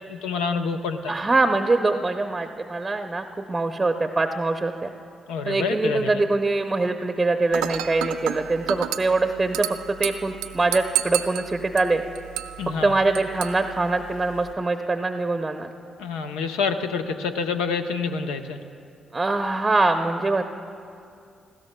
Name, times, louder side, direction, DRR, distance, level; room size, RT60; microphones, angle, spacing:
voice 1, 0.1-1.1 5.3-6.2 12.6-12.9 16.0-18.6, left 5 dB, 85° left, 7 dB, 0.6 m, -27 dB
voice 2, 1.1-4.9 5.5-12.0 12.8-15.7 19.1-20.4, right 3 dB, 25° right, 6 dB, 0.6 m, -23 dB
Dishes pots and pans / Glass, 7.5-14.5, right 12 dB, 85° right, 0.3 m, -32 dB
19.5 x 15.5 x 2.2 m, 2.5 s
hypercardioid pair, 50°, 0 cm